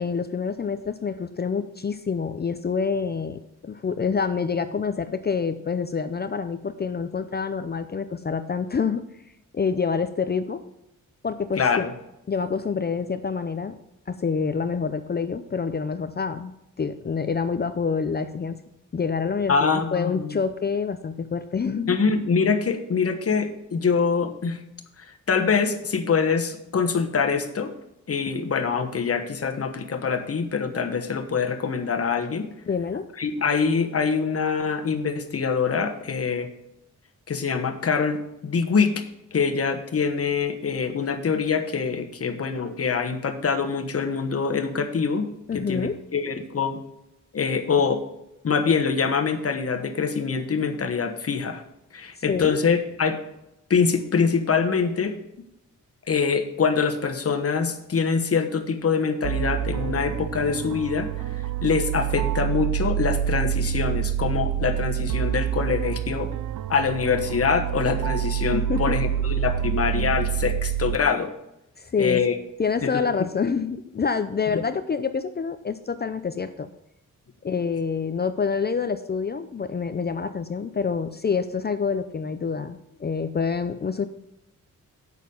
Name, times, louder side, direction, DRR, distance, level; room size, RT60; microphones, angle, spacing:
voice 1, 0.0-9.0 9.5-10.6 11.2-11.9 12.3-13.8 14.1-16.5 16.8-18.6 18.9-22.0 32.7-33.0 45.5-46.0 52.3-52.6 68.5-69.0 71.8-72.3 72.6-76.7 77.4-84.1, left 5 dB, 30° left, 10 dB, 0.5 m, -27 dB
voice 2, 11.6-11.9 19.5-20.3 21.9-24.6 25.3-27.7 28.1-32.5 33.2-36.5 37.3-39.0 39.3-45.3 45.5-46.8 47.3-48.0 48.4-51.6 51.9-53.2 53.7-55.1 56.1-61.1 61.6-66.3 66.7-71.3 72.0-72.3 72.8-72.9 74.5-74.6, left 5 dB, 50° left, 5 dB, 1.2 m, -24 dB
sound 1, 59.2-71.0, right 11 dB, 85° right, 0.5 m, -27 dB
8.2 x 6.6 x 5.4 m, 0.85 s
cardioid pair, 95°, 31 cm